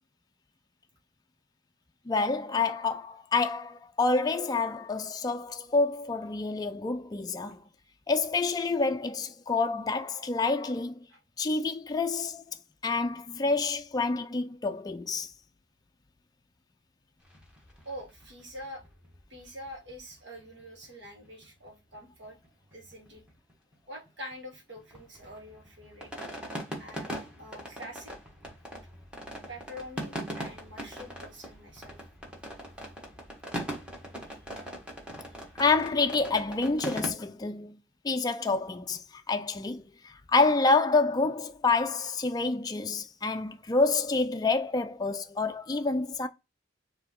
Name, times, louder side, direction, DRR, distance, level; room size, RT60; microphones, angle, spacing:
voice 1, 2.1-7.6 8.1-11.0 11.4-12.4 12.8-15.3 35.6-37.8 38.0-46.3, left 3 dB, 20° left, 0.3 m, -28 dB
sound 1, 17.2-21.7 21.9-22.0 22.2-22.5 22.7-23.7 24.1-37.1, equal, 5° right, 1.3 m, -41 dB
voice 2, 17.8-18.8 19.3-22.4 22.7-23.3 23.9-26.1 26.8-28.1 29.5-32.0, equal, 65° right, 1.6 m, -45 dB
4.5 x 2.8 x 3.6 m
head